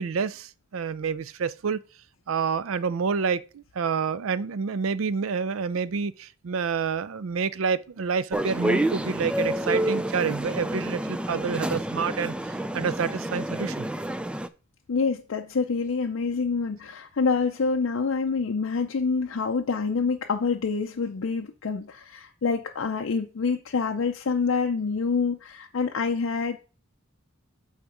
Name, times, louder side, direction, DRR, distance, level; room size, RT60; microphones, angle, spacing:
voice 1, 0.0-1.8 2.3-12.3 12.7-13.9, right 5 dB, 80° right, 0.5 m, -28 dB
sound 1, 8.3-14.5, right 1 dB, 5° right, 0.3 m, -29 dB
voice 2, 14.9-26.7, left 4 dB, 70° left, 0.5 m, -27 dB
8.0 x 3.5 x 4.9 m
head